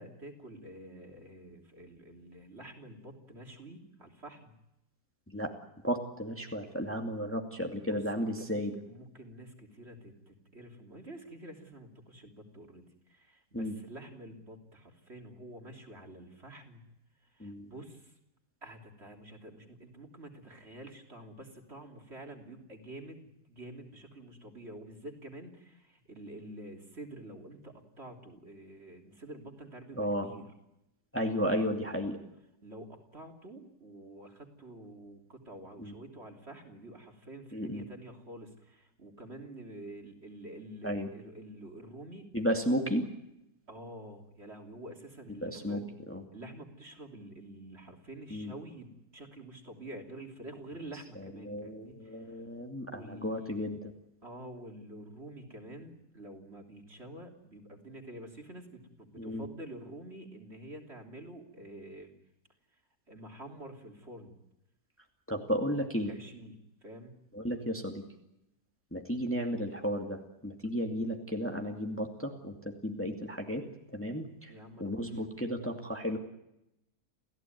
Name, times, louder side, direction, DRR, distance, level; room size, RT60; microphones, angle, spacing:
voice 1, 0.0-4.6 7.7-16.8 17.2-18.2 18.6-30.5 31.8-31.9 32.6-42.3 42.7-43.0 43.7-45.8 46.3-52.4 52.9-53.5 54.2-62.1 63.1-64.3 66.1-66.6 66.8-67.2 74.5-75.2, right 1 dB, 40° right, 2 dB, 3.5 m, -48 dB
voice 2, 5.8-8.7 13.5-13.7 17.4-17.7 30.0-30.3 31.1-32.2 35.8-35.9 37.5-37.8 40.8-41.1 42.3-43.0 45.4-45.8 46.1-46.2 48.3-48.5 51.2-53.9 59.2-59.4 65.3-66.1 67.3-68.0 68.9-73.6 73.9-74.5 74.8-76.2, equal, 10° left, 2 dB, 2.3 m, -33 dB
29.0 x 16.0 x 9.4 m, 0.86 s
omnidirectional pair, 1.7 m